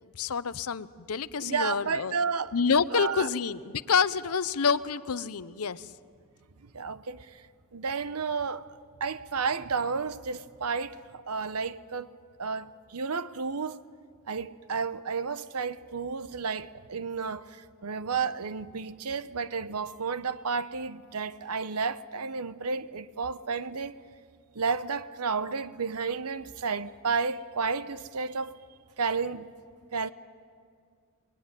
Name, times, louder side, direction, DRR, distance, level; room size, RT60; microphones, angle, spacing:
voice 1, 0.2-2.1 2.5-5.9, left 6 dB, 70° left, 0.7 m, -28 dB
voice 2, 1.4-2.5 2.9-3.3 6.7-7.4 7.7-12.1 12.4-13.8 14.3-23.9 24.5-28.6 29.0-29.5 29.9-30.1, right 5 dB, 75° right, 0.9 m, -32 dB
27.5 x 20.5 x 9.8 m
head